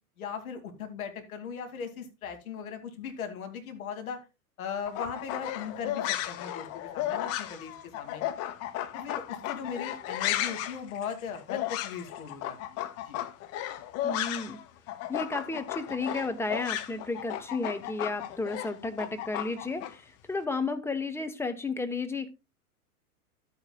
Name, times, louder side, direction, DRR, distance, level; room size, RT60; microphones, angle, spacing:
voice 1, 0.2-4.2 4.6-8.2 8.9-13.2, left 6 dB, 65° left, 5 dB, 2.5 m, -38 dB
sound 1, 4.9-14.6 14.9-19.9, left 12 dB, 35° left, 1.0 m, -34 dB
voice 2, 14.0-14.6 15.1-22.3, left 3 dB, 5° left, 8 dB, 0.9 m, -33 dB
12.5 x 8.9 x 2.3 m, 0.27 s
figure-of-eight pair, 95°, 46 cm